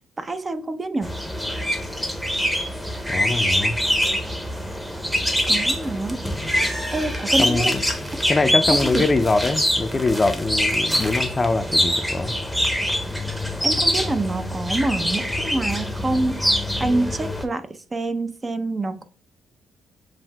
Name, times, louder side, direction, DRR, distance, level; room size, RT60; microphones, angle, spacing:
voice 1, 0.2-1.2 5.5-6.2 6.9-7.8 8.7-9.1 13.6-19.0, right 2 dB, 30° right, 0.5 m, -26 dB
sound 1, 1.0-17.4, equal, 5° right, 0.8 m, -24 dB
voice 2, 3.1-3.8 7.4-7.8 8.3-12.3, left 3 dB, 25° left, 0.4 m, -23 dB
7.3 x 2.6 x 2.3 m
cardioid pair, 90°, 0 cm